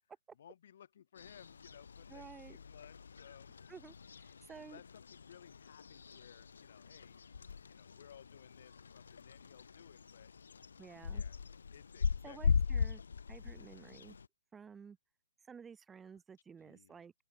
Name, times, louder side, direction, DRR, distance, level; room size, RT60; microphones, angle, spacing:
voice 1, 0.4-3.5 4.6-7.2 7.7-10.3 11.1-11.4 11.7-12.6 16.6-17.0, left 9 dB, 55° left, 0.9 m, -59 dB
sound 1, 1.2-14.3, left 6 dB, 80° left, 0.3 m, -40 dB
voice 2, 2.1-2.6 3.7-4.8 10.8-11.2 12.2-13.0 13.3-14.2 14.5-15.0 15.5-17.1, right 6 dB, 10° right, 0.5 m, -53 dB
open air
hypercardioid pair, 155°, 0 cm